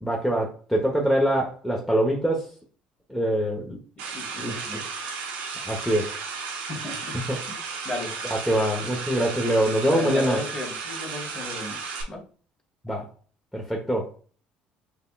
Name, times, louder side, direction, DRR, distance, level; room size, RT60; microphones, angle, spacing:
voice 1, 0.0-2.5 3.1-3.8 4.4-4.8 5.6-6.1 7.3-7.4 8.3-10.4 12.8-13.1 13.5-14.1, right 1 dB, 5° left, 1.3 m, -24 dB
sound 1, 4.0-12.0, right 5 dB, 85° right, 1.0 m, -34 dB
voice 2, 4.1-4.8 6.7-7.1 7.5-8.3 9.9-11.8 12.1-12.2, left 2 dB, 25° left, 2.0 m, -34 dB
6.8 x 2.8 x 2.5 m
hypercardioid pair, 65°, 4 cm